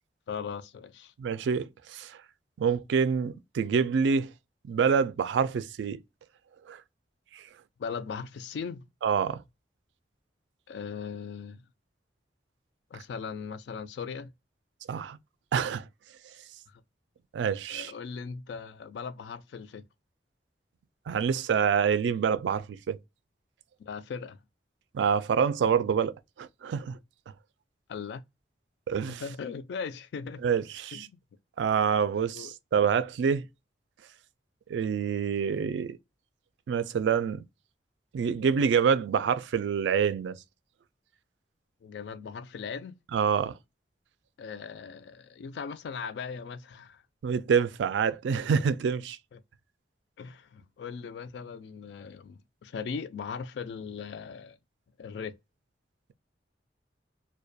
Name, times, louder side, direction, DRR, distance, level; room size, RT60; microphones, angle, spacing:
voice 1, 0.3-1.1 7.8-8.9 10.7-11.6 12.9-14.3 17.7-19.8 23.8-24.4 27.9-28.2 29.1-30.4 30.9-31.2 32.3-32.5 41.8-43.0 44.4-47.0 49.3-49.4 50.2-54.6 55.0-55.4, left 6 dB, 70° left, 0.3 m, -39 dB
voice 2, 1.2-2.1 2.6-4.3 4.7-6.0 6.7-6.8 7.3-7.4 9.0-9.4 14.9-15.2 15.5-15.8 17.3-17.9 21.1-23.0 24.9-27.0 28.9-29.2 30.4-31.1 31.6-33.4 34.7-36.0 36.7-37.4 38.1-40.4 43.1-43.5 47.2-49.2, right 6 dB, 80° right, 0.3 m, -26 dB
2.3 x 2.2 x 2.5 m
head